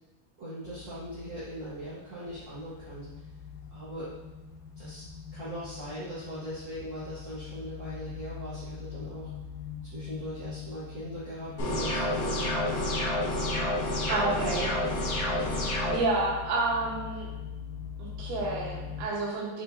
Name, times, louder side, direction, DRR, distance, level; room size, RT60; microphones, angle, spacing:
voice 1, 0.4-3.1 3.7-4.1 4.8-5.0 5.3-9.3 9.8-12.5, equal, 55° right, -11 dB, 1.3 m, -40 dB
sound 1, 0.7-19.1, left 8 dB, 80° left, 2.2 m, -42 dB
sound 2, 11.6-16.0, left 1 dB, 60° left, 2.9 m, -29 dB
voice 2, 14.1-14.7 15.9-17.3 18.0-19.6, right 3 dB, 85° right, -5 dB, 3.1 m, -30 dB
8.8 x 4.8 x 2.7 m, 1.1 s
omnidirectional pair, 4.5 m